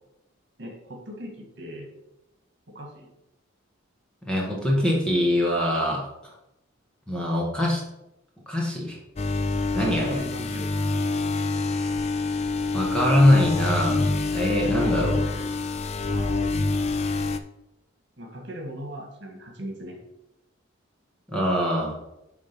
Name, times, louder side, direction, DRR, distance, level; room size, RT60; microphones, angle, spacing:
voice 1, 0.6-1.9 2.7-3.1 9.9-10.7 14.6-15.6 16.1-16.8 18.2-20.0, right 1 dB, 60° right, 1 dB, 1.9 m, -39 dB
voice 2, 4.2-6.0 7.1-7.8 8.5-9.0 9.7-10.2 12.7-14.1 14.3-15.2 21.3-22.0, left 1 dB, 5° left, -3 dB, 1.7 m, -23 dB
sound 1, 9.2-17.4, left 3 dB, 30° left, 0.5 m, -26 dB
10.5 x 3.9 x 5.3 m, 0.91 s
head